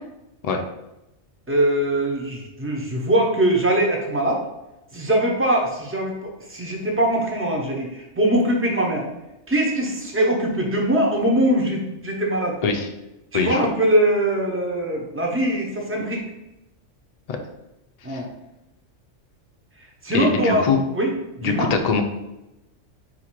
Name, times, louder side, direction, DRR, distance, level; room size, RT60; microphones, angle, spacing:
voice 1, 1.5-4.4 4.9-9.1 9.5-12.7 13.3-16.2 18.0-18.3 19.8-20.6 20.9-21.7, right 1 dB, 15° right, 0 dB, 0.6 m, -22 dB
voice 2, 20.1-20.8 21.4-22.0, left 5 dB, 60° left, 4 dB, 0.4 m, -22 dB
4.1 x 2.5 x 4.5 m, 0.92 s
omnidirectional pair, 1.2 m